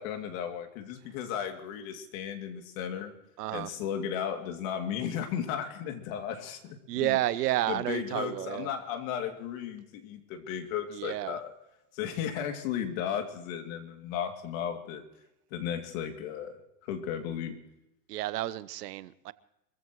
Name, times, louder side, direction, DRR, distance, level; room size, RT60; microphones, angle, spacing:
voice 1, 0.0-3.1 3.5-7.2 7.7-11.5 11.9-15.0 15.5-17.6, left 8 dB, 55° left, 5 dB, 2.8 m, -35 dB
voice 2, 3.4-3.7 6.9-8.7 10.9-11.4 18.1-19.3, right 15 dB, 75° right, 17 dB, 1.0 m, -31 dB
24.5 x 15.5 x 3.1 m, 0.85 s
supercardioid pair, 130°, 48 cm